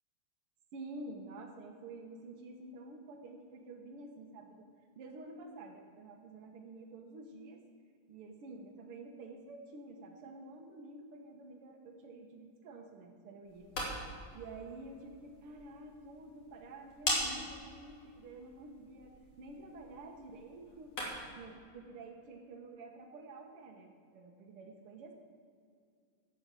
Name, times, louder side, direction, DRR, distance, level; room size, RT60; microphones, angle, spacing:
voice 1, 0.7-4.7 5.0-7.6 8.1-13.7 14.3-20.9 21.4-25.1, right 2 dB, 90° right, 2 dB, 2.1 m, -49 dB
sound 1, 13.4-21.4, left 1 dB, 80° left, 3.8 m, -42 dB
12.0 x 8.1 x 7.5 m, 2.2 s
omnidirectional pair, 2.4 m